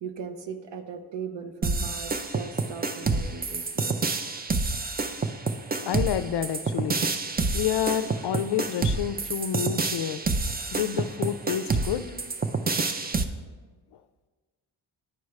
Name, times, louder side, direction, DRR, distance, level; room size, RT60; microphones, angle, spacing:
voice 1, 0.0-4.0, right 6 dB, 65° right, 7 dB, 0.9 m, -38 dB
sound 1, 1.6-13.2, right 3 dB, 20° right, 0.5 m, -28 dB
voice 2, 5.8-7.0 7.5-10.2 10.7-12.1, left 10 dB, 60° left, 12 dB, 0.5 m, -29 dB
11.0 x 4.6 x 3.2 m, 1.4 s
cardioid pair, 60°, 46 cm